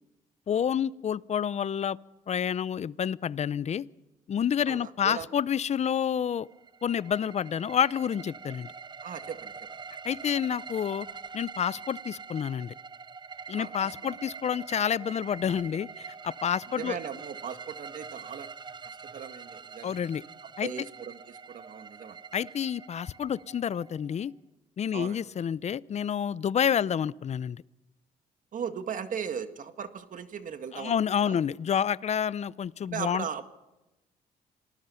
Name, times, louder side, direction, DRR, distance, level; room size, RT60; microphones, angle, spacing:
voice 1, 0.5-2.0 2.3-3.9 4.3-6.5 6.8-8.7 10.0-11.1 11.3-12.7 13.5-17.0 19.8-20.2 20.6-20.7 22.3-24.3 24.8-27.6 30.7-33.3, left 8 dB, 45° left, 20 dB, 0.6 m, -29 dB
voice 2, 4.7-5.3 9.0-9.5 13.6-14.2 16.8-18.5 19.1-20.0 20.6-22.2 24.9-25.2 28.5-31.4 32.8-33.5, right 7 dB, 55° right, 9 dB, 1.9 m, -38 dB
sound 1, 6.4-24.2, right 5 dB, 30° right, 0.7 m, -44 dB
27.0 x 19.0 x 5.7 m, 1.0 s
cardioid pair, 80°, 16 cm